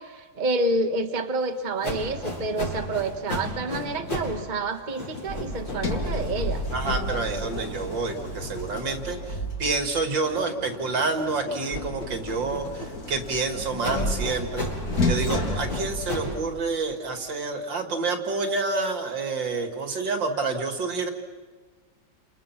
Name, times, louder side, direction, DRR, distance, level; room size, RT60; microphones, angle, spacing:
voice 1, 0.0-6.6, right 2 dB, 25° right, 6 dB, 1.4 m, -28 dB
sound 1, 1.8-4.4 4.7-9.5 9.9-13.2 13.8-16.4, left 1 dB, 70° left, 7.3 m, -36 dB
Sliding door, 5.3-10.1 11.7-16.7, left 1 dB, 50° left, 2.8 m, -31 dB
voice 2, 6.7-14.7 15.1-21.1, right 3 dB, 70° right, 5 dB, 2.9 m, -28 dB
29.5 x 27.5 x 6.0 m, 1.4 s
omnidirectional pair, 2.1 m